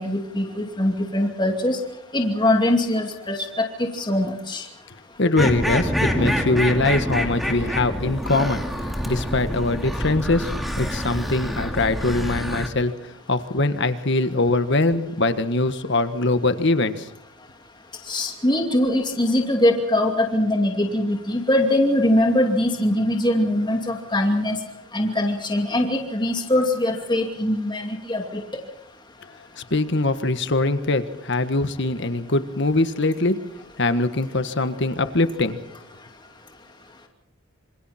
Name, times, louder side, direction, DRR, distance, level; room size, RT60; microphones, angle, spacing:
voice 1, 0.0-1.8 2.1-3.7 3.9-4.6 18.1-24.6 24.9-28.4, left 1 dB, 20° left, 2 dB, 2.5 m, -22 dB
voice 2, 5.2-8.6 9.1-17.1 29.6-33.4 33.8-35.6, left 2 dB, 60° left, 10 dB, 1.5 m, -22 dB
sound 1, 5.4-12.7, equal, ahead, 2.6 m, -26 dB
27.0 x 26.5 x 4.4 m, 0.74 s
head